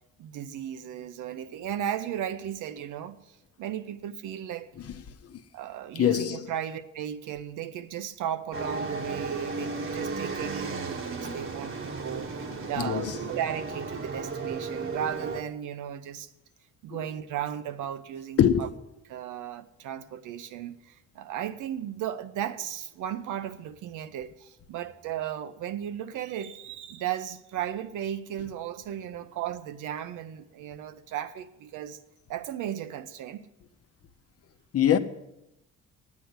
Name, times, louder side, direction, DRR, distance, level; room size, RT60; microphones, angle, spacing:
voice 1, 0.2-4.7 5.5-16.3 16.8-18.7 19.1-32.0 32.3-33.5, right 10 dB, 85° right, 0.8 m, -35 dB
voice 2, 6.0-6.5 12.8-13.2 18.4-18.6 34.7-35.0, left 9 dB, 50° left, 0.8 m, -23 dB
sound 1, 8.5-15.4, right 4 dB, 45° right, 1.1 m, -34 dB
9.2 x 8.4 x 8.1 m
cardioid pair, 90°, 30 cm